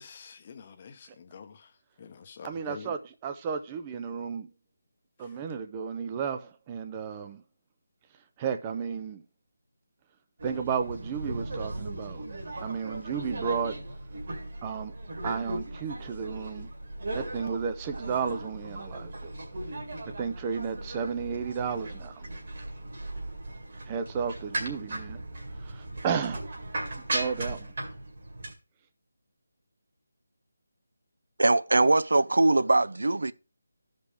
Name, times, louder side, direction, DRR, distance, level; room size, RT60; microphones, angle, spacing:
voice 1, 0.0-1.7 2.0-2.9 5.2-5.3, left 6 dB, 25° left, 0.8 m, -47 dB
voice 2, 2.4-4.5 5.2-7.4 8.4-9.2 10.4-12.2 12.6-13.8 14.6-14.9 15.2-16.7 17.1-19.3 20.2-22.3 23.9-25.2 25.6-26.4 26.9-27.7, right 6 dB, 15° right, 0.4 m, -33 dB
sound 1, 10.4-28.5, right 1 dB, 40° right, 2.3 m, -37 dB
voice 3, 31.4-33.3, right 2 dB, 80° right, 0.5 m, -22 dB
14.0 x 5.2 x 3.4 m
figure-of-eight pair, 175°, 0 cm